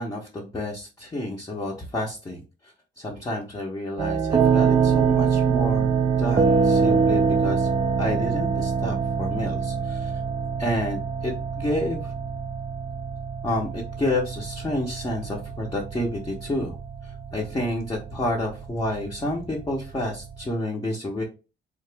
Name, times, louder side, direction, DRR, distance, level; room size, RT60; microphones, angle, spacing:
voice 1, 0.0-5.9 6.2-7.7 8.0-10.1 10.6-12.1 13.4-16.8 17.0-21.2, left 1 dB, 15° left, -1 dB, 0.6 m, -30 dB
sound 1, 4.0-20.5, right 6 dB, 25° right, 0.3 m, -25 dB
4.0 x 2.9 x 3.3 m, 0.31 s
wide cardioid pair, 180°, 21 cm